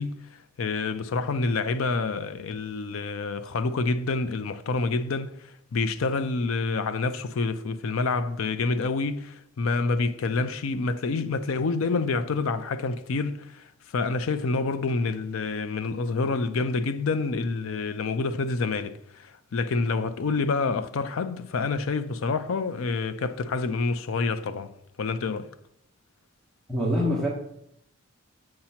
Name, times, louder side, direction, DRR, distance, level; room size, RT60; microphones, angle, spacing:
voice 1, 0.0-25.5, left 3 dB, 75° left, 0.4 m, -28 dB
voice 2, 26.7-27.3, equal, ahead, 1.3 m, -24 dB
7.6 x 2.9 x 5.6 m
head